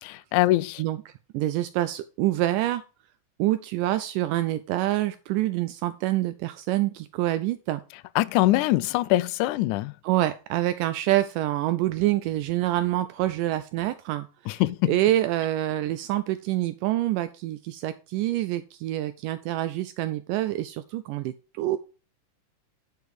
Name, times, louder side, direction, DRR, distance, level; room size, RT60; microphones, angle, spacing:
voice 1, 0.0-0.8 8.2-9.9 14.6-14.9, left 17 dB, 80° left, 1.9 m, -23 dB
voice 2, 0.8-2.8 3.4-7.8 10.0-21.8, right 15 dB, 80° right, 2.1 m, -26 dB
10.0 x 5.0 x 4.7 m
omnidirectional pair, 3.9 m